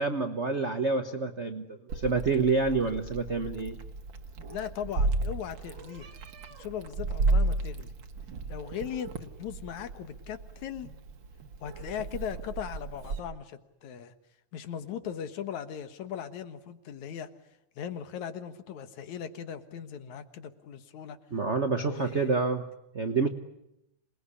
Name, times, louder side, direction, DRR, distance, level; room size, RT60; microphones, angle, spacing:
voice 1, 0.0-3.8 21.3-22.7 22.9-23.3, right 4 dB, 75° right, 8 dB, 0.6 m, -28 dB
Meow, 1.9-13.2, right 2 dB, 45° right, 1.9 m, -33 dB
voice 2, 4.5-6.2 6.6-7.9 8.5-10.9 11.6-14.1 14.5-17.3 17.8-21.2 21.7-22.4, left 8 dB, 75° left, 10 dB, 2.8 m, -39 dB
27.0 x 20.5 x 9.9 m, 0.85 s
omnidirectional pair, 3.3 m